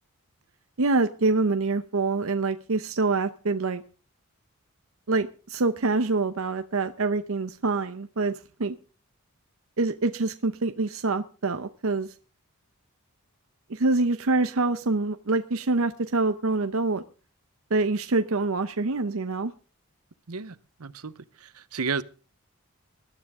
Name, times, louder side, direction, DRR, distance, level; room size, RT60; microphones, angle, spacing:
voice 1, 0.8-3.8 5.1-8.8 9.8-12.1 13.7-17.0 17.7-19.5, right 3 dB, 70° right, 0.8 m, -25 dB
voice 2, 20.3-22.0, right 5 dB, 90° right, 0.9 m, -33 dB
20.0 x 12.0 x 3.7 m
head